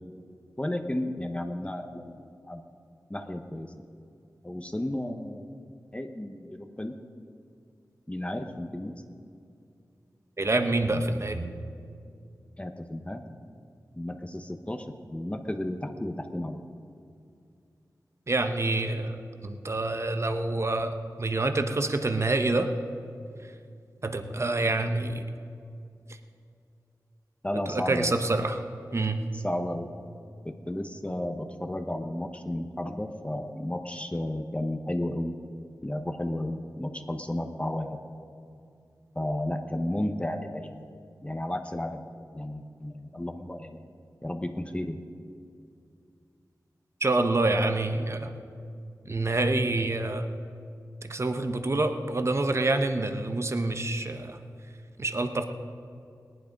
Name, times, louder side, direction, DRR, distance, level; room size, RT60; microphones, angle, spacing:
voice 1, 0.6-2.6 3.1-3.7 4.4-5.5 5.9-6.9 8.1-8.9 12.6-13.2 14.0-16.6 27.4-28.1 29.3-29.9 30.4-35.3 35.8-38.0 39.1-40.8 41.2-42.0 42.3-43.9 44.2-45.0, left 1 dB, 15° left, 5 dB, 1.0 m, -33 dB
voice 2, 10.4-11.5 18.3-19.2 19.4-22.7 24.0-25.2 27.7-28.6 28.9-29.2 47.0-48.3 49.0-50.3 51.0-54.4 55.0-55.4, right 2 dB, 45° right, 7 dB, 1.0 m, -27 dB
18.0 x 11.0 x 5.3 m, 2.4 s
wide cardioid pair, 60°, 7 cm